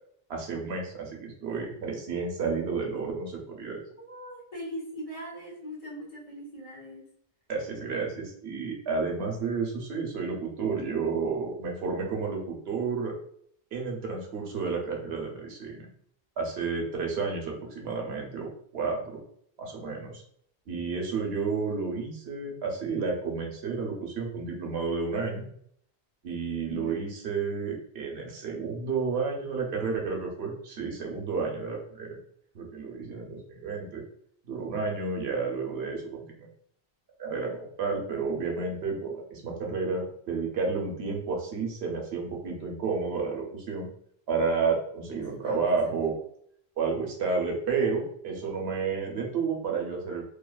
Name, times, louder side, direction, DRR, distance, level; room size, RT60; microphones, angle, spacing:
voice 1, 0.3-3.8 7.5-13.1 13.7-15.9 16.4-19.2 19.6-20.2 20.7-25.4 26.2-32.1 32.5-34.0 34.4-36.5 37.2-43.9 44.3-46.2 46.8-50.2, right 4 dB, 85° right, 0 dB, 0.9 m, -31 dB
voice 2, 4.1-7.1 26.7-27.0 45.1-46.1, left 1 dB, 40° left, -6 dB, 0.8 m, -41 dB
2.6 x 2.3 x 2.2 m, 0.65 s
omnidirectional pair, 1.0 m